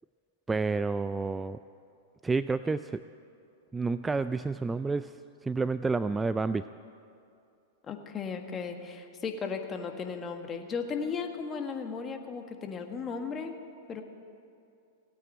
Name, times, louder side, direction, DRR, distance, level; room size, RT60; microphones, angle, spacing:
voice 1, 0.5-1.6 2.2-3.0 3.7-5.1 5.5-6.7, right 4 dB, 15° right, 13 dB, 0.3 m, -29 dB
voice 2, 7.8-13.5 13.9-14.0, left 5 dB, 25° left, 5 dB, 1.6 m, -36 dB
17.0 x 9.0 x 9.2 m, 2.5 s
hypercardioid pair, 105°, 0 cm